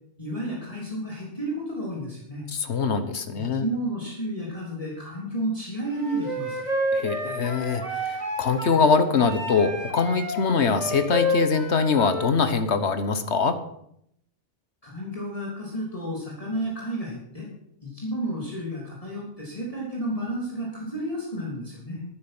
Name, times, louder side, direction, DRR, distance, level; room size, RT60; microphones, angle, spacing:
voice 1, 0.2-2.5 3.3-6.6 14.8-17.5 17.8-22.0, right 1 dB, 30° left, -4 dB, 3.4 m, -31 dB
voice 2, 2.5-3.6 6.9-13.6, left 5 dB, 65° left, 10 dB, 1.4 m, -23 dB
Wind instrument woodwind instrument, 6.0-8.8 9.2-12.3, equal, 35° right, 3.0 m, -30 dB
12.0 x 9.6 x 6.1 m, 0.73 s
omnidirectional pair, 1.2 m